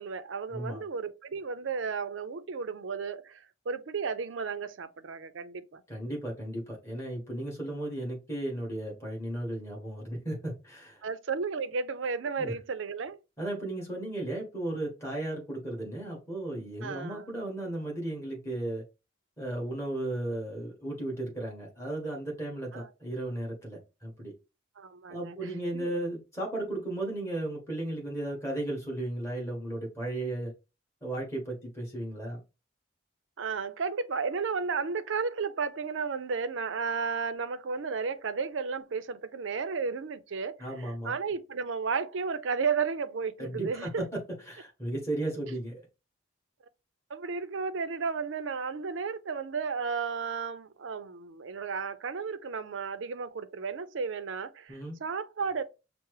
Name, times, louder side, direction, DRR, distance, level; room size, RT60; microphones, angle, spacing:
voice 1, 0.0-5.8 11.0-13.2 16.8-17.3 22.7-22.9 24.8-25.4 25.7-25.9 33.4-44.0 47.1-55.6, right 5 dB, 65° right, 0.5 m, -33 dB
voice 2, 5.9-11.0 12.4-12.5 13.4-18.8 19.4-24.3 25.1-30.5 31.0-32.4 40.6-41.1 43.4-44.2 44.5-45.8 54.7-55.0, right 1 dB, 15° left, 1.6 m, -35 dB
5.8 x 2.0 x 3.1 m
head